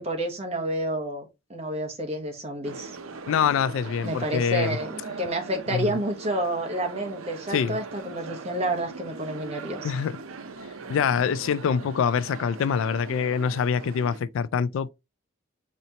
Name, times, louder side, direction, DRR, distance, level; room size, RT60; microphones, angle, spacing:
voice 1, 0.0-3.0 4.0-9.9, right 1 dB, 30° right, 1.1 m, -29 dB
sound 1, 2.6-14.2, right 4 dB, 85° right, 0.6 m, -40 dB
voice 2, 3.3-4.8 5.7-5.9 7.5-7.8 9.8-10.1 10.9-14.9, left 7 dB, 75° left, 0.3 m, -25 dB
4.3 x 3.9 x 2.8 m
head